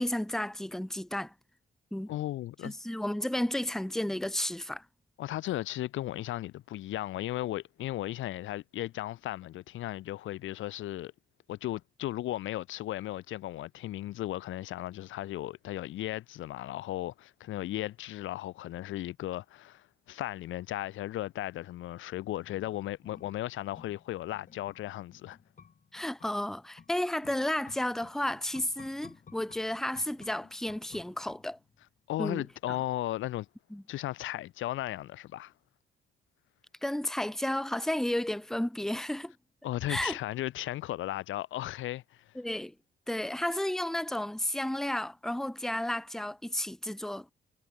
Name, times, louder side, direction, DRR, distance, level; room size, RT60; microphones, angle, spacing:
voice 1, 0.0-1.3 1.9-2.1 2.6-4.8 25.9-31.6 32.2-32.4 33.7-33.8 36.8-39.3 39.9-40.2 42.4-42.7 43.1-47.3, left 1 dB, ahead, 0.9 m, -32 dB
voice 2, 2.1-2.7 5.2-11.1 11.5-25.4 32.1-33.5 33.9-35.5 39.6-42.2, left 14 dB, 80° left, 1.0 m, -36 dB
sound 1, 22.9-31.9 32.2-32.3, left 6 dB, 40° left, 3.1 m, -56 dB
cardioid pair, 90°, 20 cm